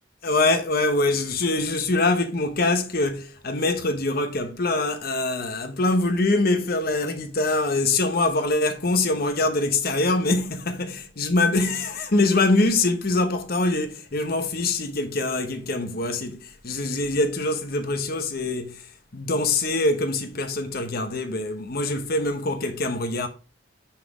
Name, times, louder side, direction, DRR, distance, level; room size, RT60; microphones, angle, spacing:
voice 1, 0.2-23.3, left 2 dB, 50° left, 1.0 m, -24 dB
5.9 x 5.9 x 4.8 m
head